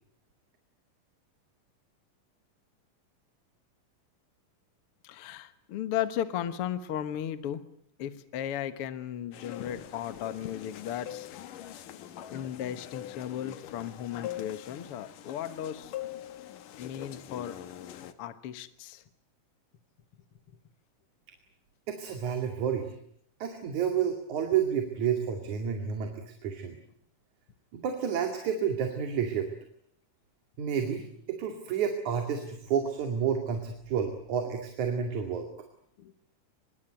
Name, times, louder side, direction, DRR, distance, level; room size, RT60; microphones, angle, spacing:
voice 1, 5.0-7.6 8.0-11.3 12.3-15.9 16.8-17.6 18.2-19.0 36.0-36.1, left 10 dB, 55° left, 12 dB, 1.9 m, -35 dB
sound 1, 9.3-18.1, left 12 dB, 80° left, 3.0 m, -43 dB
voice 2, 21.9-22.9 23.4-26.8 27.7-29.5 30.6-35.5, right 7 dB, 65° right, 5 dB, 3.7 m, -30 dB
25.0 x 22.5 x 9.1 m, 0.66 s
omnidirectional pair, 3.7 m